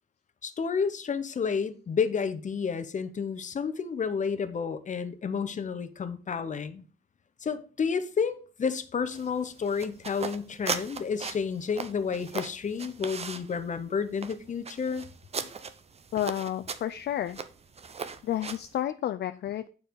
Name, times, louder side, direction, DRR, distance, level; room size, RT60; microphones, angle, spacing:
voice 1, 0.4-6.8 7.4-15.1, left 6 dB, 35° left, 0.8 m, -30 dB
sound 1, 9.1-18.8, right 5 dB, 30° right, 0.6 m, -39 dB
voice 2, 16.1-17.4 18.2-19.7, left 11 dB, 55° left, 0.4 m, -31 dB
8.8 x 4.7 x 5.2 m
wide cardioid pair, 145°, 21 cm